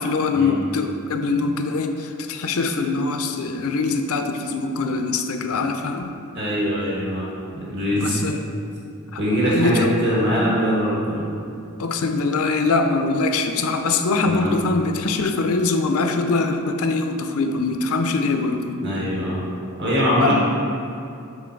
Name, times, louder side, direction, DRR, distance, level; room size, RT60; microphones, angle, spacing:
voice 1, 0.0-6.1 8.0-8.4 9.5-9.9 11.8-18.8 20.2-20.3, left 3 dB, 65° left, 6 dB, 0.5 m, -23 dB
voice 2, 6.3-8.2 9.2-11.3 14.2-14.6 18.7-19.4 19.8-20.3, equal, 55° right, -6 dB, 1.6 m, -22 dB
7.5 x 4.0 x 4.5 m, 2.6 s
head